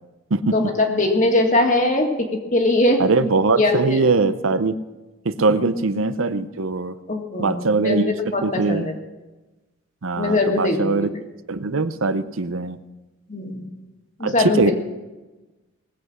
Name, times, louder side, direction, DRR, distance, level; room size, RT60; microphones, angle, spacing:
voice 1, 0.5-3.0 3.5-4.1 7.1-8.9 10.2-10.9 13.3-13.7 14.2-14.7, left 2 dB, 40° left, 3 dB, 2.0 m, -21 dB
voice 2, 3.0-4.8 5.2-6.9 7.4-8.1 8.4-8.9 10.0-11.1 11.5-12.8 14.2-14.7, right 3 dB, 75° right, 13 dB, 0.7 m, -21 dB
20.0 x 8.0 x 6.2 m, 1.1 s
head